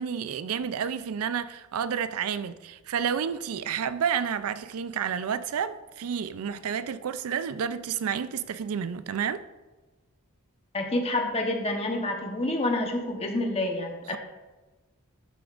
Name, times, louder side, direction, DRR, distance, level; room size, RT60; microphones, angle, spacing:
voice 1, 0.0-9.4 14.1-14.2, right 7 dB, 80° right, 0.4 m, -30 dB
voice 2, 10.7-14.2, left 2 dB, 25° left, 1.0 m, -28 dB
12.0 x 6.9 x 2.5 m
head